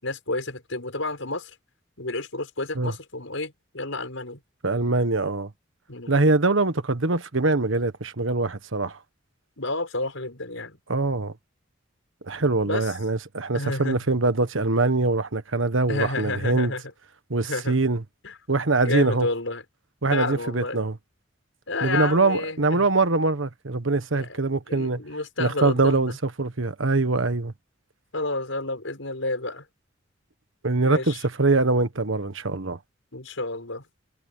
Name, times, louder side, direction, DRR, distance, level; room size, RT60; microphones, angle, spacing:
voice 1, 0.0-1.5 2.0-4.4 5.9-6.2 9.6-10.8 12.6-12.9 13.5-14.0 15.9-16.8 17.4-17.7 18.2-18.3 18.8-19.6 20.1-20.8 21.7-22.8 24.1-24.4 24.7-26.2 28.1-29.7 30.8-31.2 33.1-33.8, left 2 dB, 85° left, 6.1 m, -30 dB
voice 2, 4.6-5.5 6.1-9.0 10.9-11.3 12.2-16.7 17.3-18.0 18.5-19.3 20.0-21.0 21.8-25.0 25.4-26.1 26.4-27.5 30.6-32.8, right 3 dB, 85° right, 1.4 m, -23 dB
head